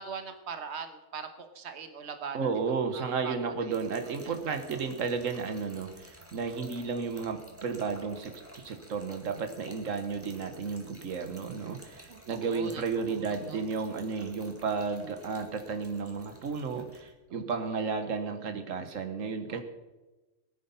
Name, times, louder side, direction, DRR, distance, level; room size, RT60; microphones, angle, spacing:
voice 1, 0.0-2.5 2.9-3.7 4.2-4.6 12.1-13.6 17.3-17.8 18.3-18.4 19.5-19.6, right 5 dB, 60° right, 8 dB, 1.5 m, -42 dB
voice 2, 2.3-19.6, right 5 dB, 85° right, 7 dB, 1.5 m, -33 dB
Trickle dribble / Fill (with liquid), 3.7-17.1, right 1 dB, 10° right, 2.1 m, -53 dB
19.5 x 9.9 x 5.5 m, 1.1 s
omnidirectional pair, 1.3 m